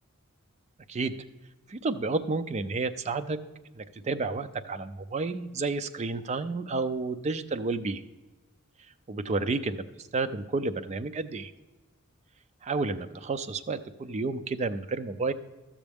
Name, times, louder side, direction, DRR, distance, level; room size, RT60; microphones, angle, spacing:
voice 1, 1.7-3.4 3.7-8.0 9.1-11.5 12.6-15.3, right 3 dB, 30° right, 9 dB, 0.4 m, -31 dB
13.0 x 7.2 x 3.4 m, 1.1 s
head